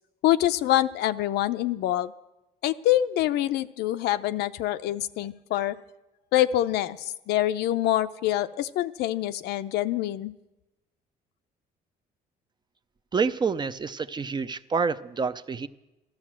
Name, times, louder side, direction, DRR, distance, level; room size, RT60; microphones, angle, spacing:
voice 1, 0.2-2.1 2.6-5.8 6.3-10.3, left 13 dB, 80° left, 12 dB, 0.7 m, -25 dB
voice 2, 13.1-15.7, right 5 dB, 25° right, 12 dB, 0.6 m, -28 dB
13.5 x 13.0 x 7.5 m, 1.0 s
cardioid pair, 110°, 17 cm